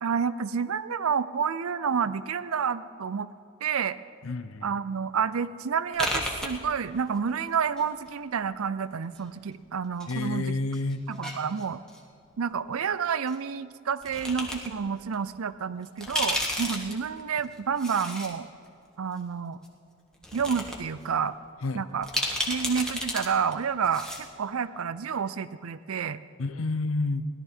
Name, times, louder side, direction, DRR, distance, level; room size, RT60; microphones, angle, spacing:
voice 1, 0.0-3.3 3.6-4.0 4.6-10.5 11.1-11.8 12.4-18.5 19.0-19.6 20.3-21.4 21.7-22.1 22.5-24.1 24.4-26.2, right 6 dB, 75° right, 15 dB, 0.5 m, -29 dB
voice 2, 4.2-4.8 10.1-11.1 21.6-21.9 26.4-27.3, left 3 dB, 65° left, 13 dB, 0.6 m, -29 dB
sound 1, 5.9-7.2 7.4-8.4 9.2-10.2 10.5-12.0 13.3-13.4 14.0-14.7 15.1-15.2 15.8-18.3 18.7-18.8 19.6-19.7 20.1-20.8 21.1-21.2 22.0-23.3 23.5-23.6 23.8-24.3, left 1 dB, 5° left, 1.4 m, -32 dB
17.0 x 12.0 x 4.5 m, 2.5 s
head